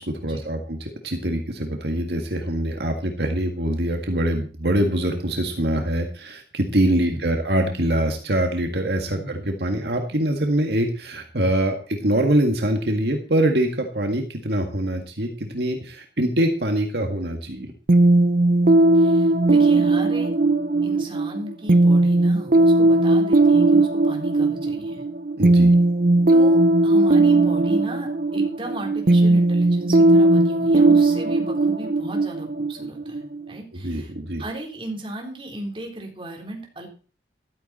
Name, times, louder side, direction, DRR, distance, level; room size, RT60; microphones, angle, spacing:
voice 1, 0.0-17.7 25.4-25.7 33.7-34.4, right 1 dB, 70° right, 4 dB, 1.9 m, -24 dB
sound 1, 17.9-33.5, right 2 dB, 50° right, 0.7 m, -18 dB
voice 2, 18.9-20.4 20.8-25.1 26.3-34.1 34.4-36.9, right 1 dB, 30° right, 1 dB, 4.0 m, -36 dB
14.5 x 12.5 x 4.3 m, 0.37 s
head